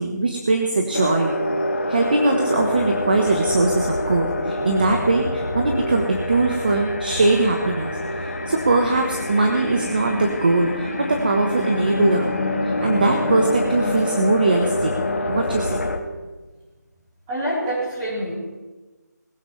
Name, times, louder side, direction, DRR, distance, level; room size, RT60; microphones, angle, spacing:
voice 1, 0.0-1.3 1.9-12.3 12.6-14.9 15.3-15.8, right 2 dB, 30° right, 3 dB, 1.1 m, -21 dB
sound 1, 0.9-16.0, left 1 dB, 45° left, 1.5 m, -26 dB
voice 2, 17.3-18.3, right 1 dB, 10° right, -10 dB, 4.1 m, -26 dB
20.0 x 14.5 x 3.3 m, 1.2 s
figure-of-eight pair, 180°, 10 cm